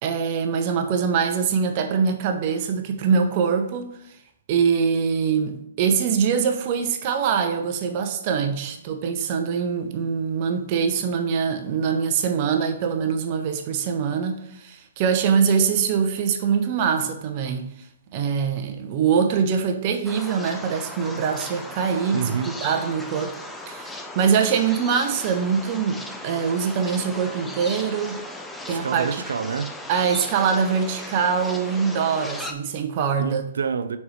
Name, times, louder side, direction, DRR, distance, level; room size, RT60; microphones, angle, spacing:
voice 1, 0.0-3.9 4.5-17.7 18.1-23.4 23.7-28.2 28.7-29.2 29.9-33.5, right 6 dB, 40° right, 0.7 m, -23 dB
sound 1, 20.1-32.5, left 1 dB, 5° left, 0.5 m, -37 dB
voice 2, 22.1-22.6 28.7-29.7 33.2-34.0, right 6 dB, 75° right, 0.4 m, -27 dB
4.7 x 4.2 x 4.8 m
hypercardioid pair, 140°, 0 cm